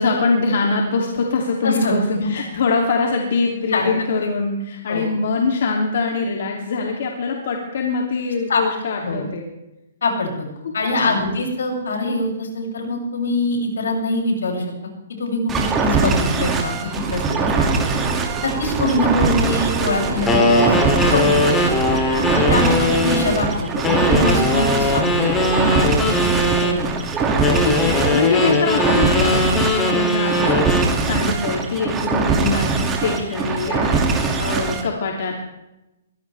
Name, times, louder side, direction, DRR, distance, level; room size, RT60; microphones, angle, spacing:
voice 1, 0.0-9.5 11.0-11.3 26.6-26.9 27.6-35.4, left 4 dB, 65° left, 0 dB, 2.9 m, -23 dB
voice 2, 1.6-2.4 3.7-3.9 4.2-4.3 4.9-5.1 8.5-8.6 9.0-9.2 10.0-10.5 10.7-14.7 15.2-18.0 18.4-21.9 22.4-25.4 26.2-26.5 27.3-27.5, left 2 dB, 90° left, 0 dB, 7.3 m, -24 dB
sound 1, 15.5-34.9, right 4 dB, 15° right, 2.4 m, -22 dB
sound 2, 16.9-27.0, right 5 dB, 30° right, 3.1 m, -31 dB
sound 3, 20.3-23.3 23.8-26.8 27.4-30.9, left 2 dB, 15° left, 3.0 m, -19 dB
23.0 x 17.0 x 3.5 m, 0.94 s
hypercardioid pair, 155°, 0 cm